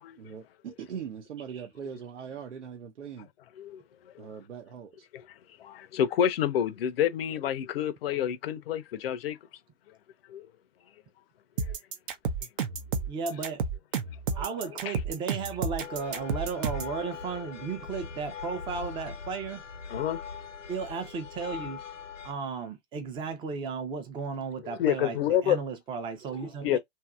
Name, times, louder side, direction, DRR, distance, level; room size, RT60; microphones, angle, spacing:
voice 1, 0.2-3.3 4.2-5.1, right 7 dB, 70° right, 0.9 m, -41 dB
voice 2, 3.6-4.3 5.1-5.2 5.6-9.4 9.9-10.0 10.3-10.5 11.6-11.8 14.3-15.0 19.9-20.2 24.6-25.6 26.6-26.8, left 10 dB, 50° left, 0.7 m, -29 dB
sound 1, 11.6-16.9, right 5 dB, 45° right, 0.8 m, -31 dB
voice 3, 13.1-13.6 14.3-19.6 20.7-21.8 22.2-25.2 25.4-26.8, right 5 dB, 15° right, 0.6 m, -34 dB
sound 2, 15.8-22.3, left 6 dB, 85° left, 0.9 m, -41 dB
2.9 x 2.7 x 2.3 m
hypercardioid pair, 130°, 37 cm